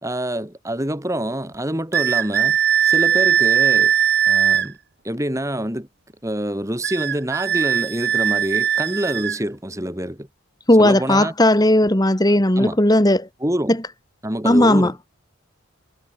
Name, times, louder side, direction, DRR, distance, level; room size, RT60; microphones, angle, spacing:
voice 1, 0.0-3.9 4.3-4.8 5.0-5.9 6.2-10.3 10.8-11.3 12.3-12.8 13.4-13.8 14.2-15.0, right 1 dB, 15° right, 2.6 m, -26 dB
sound 1, 1.9-4.7 6.8-9.4, right 9 dB, 50° right, 1.6 m, -19 dB
voice 2, 10.7-13.3 14.4-14.9, left 1 dB, 20° left, 1.8 m, -16 dB
head